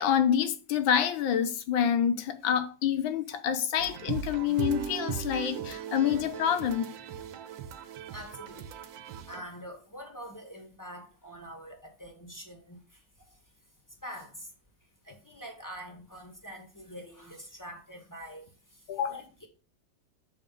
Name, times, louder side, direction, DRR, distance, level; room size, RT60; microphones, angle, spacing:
voice 1, 0.0-6.9 18.9-19.1, left 9 dB, 85° left, 1.6 m, -27 dB
sound 1, 3.8-9.4, right 8 dB, 80° right, 1.5 m, -38 dB
voice 2, 8.1-8.7 9.3-13.0 13.3-13.4 14.0-14.5 15.0-19.5, equal, 10° left, 1.1 m, -45 dB
6.6 x 4.2 x 5.2 m
omnidirectional pair, 2.1 m